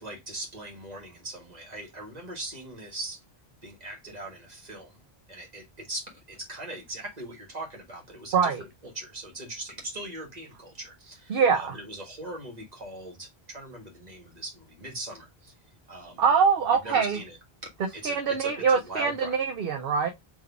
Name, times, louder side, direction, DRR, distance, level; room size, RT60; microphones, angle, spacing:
voice 1, 0.0-3.2 3.6-5.0 5.3-8.7 8.9-15.5 15.9-16.2 16.8-17.4 17.9-19.4, right 2 dB, 40° right, 1.7 m, -40 dB
voice 2, 8.3-8.6 11.3-11.7 16.2-17.2 18.0-20.1, right 6 dB, 65° right, 0.8 m, -23 dB
3.8 x 3.1 x 3.4 m
omnidirectional pair, 1.1 m